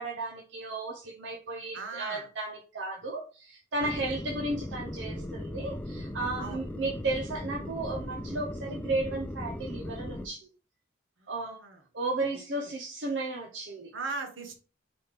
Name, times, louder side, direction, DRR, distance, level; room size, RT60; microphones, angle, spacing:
voice 1, 0.0-10.5 11.3-11.6 11.9-13.9, right 2 dB, 65° right, 0.6 m, -34 dB
voice 2, 1.7-2.3 3.8-3.9 6.4-6.6 11.4-11.8 12.6-12.7 13.9-14.6, right 4 dB, 80° right, 1.1 m, -38 dB
sound 1, 3.8-10.3, left 1 dB, 10° left, 0.3 m, -38 dB
4.0 x 3.2 x 3.4 m
head